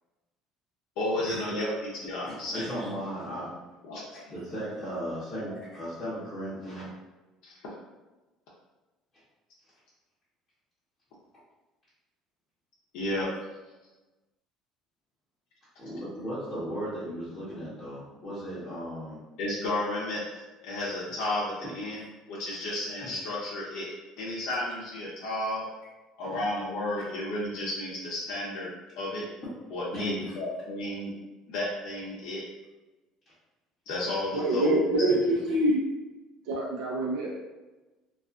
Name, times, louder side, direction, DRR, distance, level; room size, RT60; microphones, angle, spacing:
voice 1, 1.0-2.7 3.8-4.6 5.5-5.6 7.4-7.6 12.9-13.3 19.4-25.6 26.2-28.7 29.0-29.3 29.7-31.1 31.5-32.4 33.9-35.4, left 1 dB, 75° left, -6 dB, 0.6 m, -33 dB
voice 2, 2.2-3.5 4.1-6.9 15.8-19.2 29.9-30.4, equal, 15° left, -13 dB, 0.8 m, -36 dB
voice 3, 34.3-35.8 36.5-37.3, right 1 dB, 85° right, -3 dB, 0.5 m, -25 dB
2.4 x 2.3 x 2.5 m, 1.1 s
cardioid pair, 165°, 0 cm